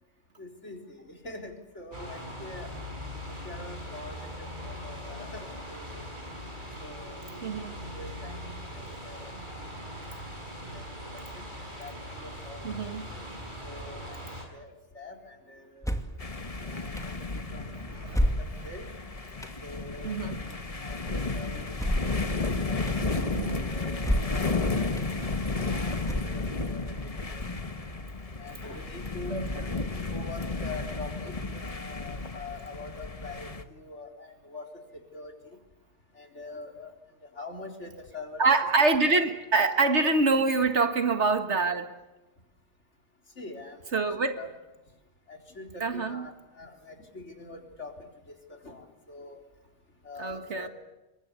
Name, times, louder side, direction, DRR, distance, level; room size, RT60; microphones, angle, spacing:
voice 1, 0.4-2.7 3.3-6.0 6.8-7.3 7.6-8.4 8.7-9.3 10.7-10.9 11.1-11.5 11.8-13.3 13.6-16.0 16.7-17.0 17.3-17.6 18.2-18.9 19.6-20.5 20.8-22.3 22.7-23.1 23.4-24.6 25.6-27.8 28.4-34.7 34.9-35.3 36.2-36.9 37.4-38.5 39.0-39.1 43.4-44.0 44.4-44.5 45.3-48.1 48.5-49.4 50.0-50.7, left 3 dB, 85° left, 3 dB, 4.3 m, -44 dB
sound 1, 1.9-14.5, equal, 45° right, 5.8 m, -41 dB
voice 2, 7.4-7.7 12.6-13.0 16.7-18.4 20.0-20.4 23.4-23.6 29.3-29.6 38.4-42.0 43.9-44.4 45.8-46.3 50.2-50.7, right 3 dB, 75° right, 7 dB, 2.1 m, -26 dB
sound 2, 15.8-16.2 17.0-17.1 18.1-18.8 19.4-19.6 21.8-22.2 22.9-23.0 24.0-24.5 25.0-25.1 26.0-26.6, equal, 5° left, 2.4 m, -28 dB
sound 3, 16.2-33.6, left 3 dB, 30° left, 1.4 m, -33 dB
27.5 x 23.0 x 8.3 m, 1.0 s
omnidirectional pair, 1.2 m